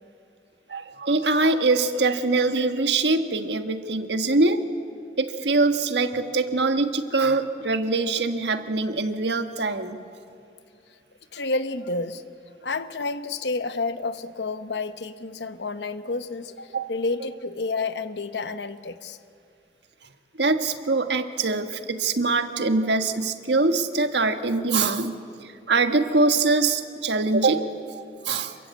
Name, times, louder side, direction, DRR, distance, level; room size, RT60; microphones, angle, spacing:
voice 1, 0.7-4.6 5.2-10.0 16.7-16.9 20.4-28.5, right 3 dB, 85° right, 8 dB, 1.5 m, -23 dB
voice 2, 11.3-12.2 12.6-19.2, left 3 dB, 85° left, 11 dB, 1.1 m, -30 dB
27.5 x 23.0 x 8.4 m, 2.5 s
head